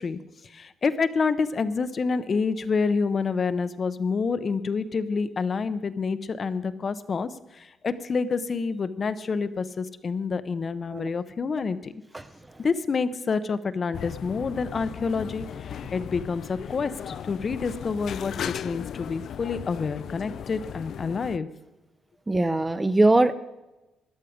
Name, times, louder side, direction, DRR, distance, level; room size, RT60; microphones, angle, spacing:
voice 1, 0.0-11.9 12.6-21.5, left 5 dB, 40° left, 12 dB, 0.7 m, -28 dB
voice 2, 12.1-12.6 15.8-15.9 22.3-23.3, right 2 dB, 15° right, 12 dB, 0.6 m, -22 dB
sound 1, 13.9-21.4, left 9 dB, 65° left, 0.3 m, -37 dB
12.5 x 11.5 x 5.1 m, 1.0 s
cardioid pair, 90°, 0 cm